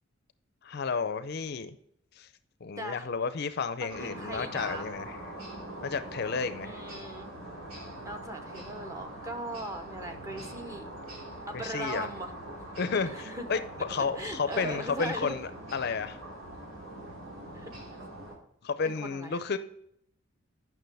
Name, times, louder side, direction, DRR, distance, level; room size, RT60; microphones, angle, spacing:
voice 1, 0.6-1.7 2.2-2.3 2.6-5.2 5.8-6.8 11.5-12.1 12.8-16.2 18.6-19.6, left 5 dB, 50° left, 12 dB, 0.5 m, -32 dB
voice 2, 2.8-3.1 3.8-4.9 6.6-7.3 8.0-10.9 11.5-12.3 13.1-13.4 14.2-15.4 17.5-17.7 18.8-19.4, right 1 dB, 15° right, 5 dB, 0.8 m, -39 dB
sound 1, 3.9-18.4, right 1 dB, 90° right, 2.6 m, -43 dB
9.2 x 6.0 x 3.4 m, 0.72 s
head